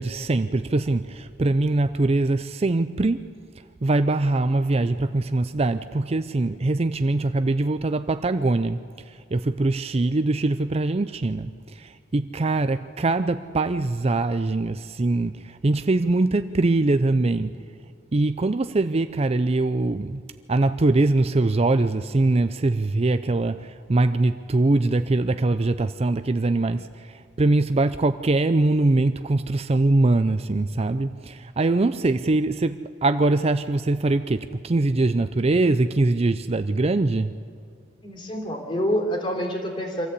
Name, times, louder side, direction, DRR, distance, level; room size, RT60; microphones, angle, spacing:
voice 1, 0.0-3.2 3.8-8.8 9.1-17.6 18.1-20.2 20.5-37.4, right 2 dB, 35° right, 0.5 m, -22 dB
voice 2, 38.0-40.1, equal, 30° left, 3.4 m, -27 dB
25.5 x 14.0 x 8.3 m
head